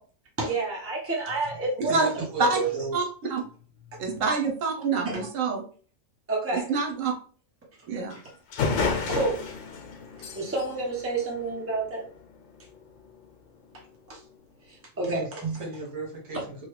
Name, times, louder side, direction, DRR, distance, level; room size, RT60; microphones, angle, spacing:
voice 1, 0.4-2.0 2.5-2.8 4.4-4.5 5.0-5.3 6.3-6.7 9.1-9.6 10.3-12.1 14.1-14.2 14.6-15.6, right 3 dB, 15° right, 0.7 m, -29 dB
voice 2, 1.8-3.0 15.1-15.3 15.6-16.5, right 2 dB, 65° right, 1.5 m, -35 dB
voice 3, 4.0-5.6 6.5-7.1 7.9-8.2, right 4 dB, 85° right, 1.1 m, -26 dB
sound 1, 8.1-8.2 8.5-12.0, left 4 dB, 80° left, 1.0 m, -31 dB
3.0 x 2.4 x 3.2 m
omnidirectional pair, 1.3 m